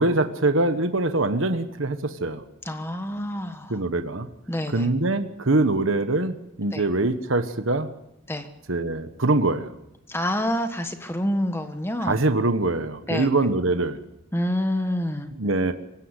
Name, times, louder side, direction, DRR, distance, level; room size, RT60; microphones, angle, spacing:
voice 1, 0.0-2.4 3.7-4.3 4.7-7.9 8.7-9.7 12.1-14.0 15.4-15.7, right 2 dB, 65° right, 9 dB, 1.3 m, -23 dB
voice 2, 2.6-3.8 4.5-4.9 6.7-6.9 8.3-8.5 10.1-12.2 13.1-13.3 14.3-15.3, left 1 dB, 10° left, 7 dB, 1.4 m, -27 dB
25.5 x 16.0 x 8.3 m, 0.86 s
head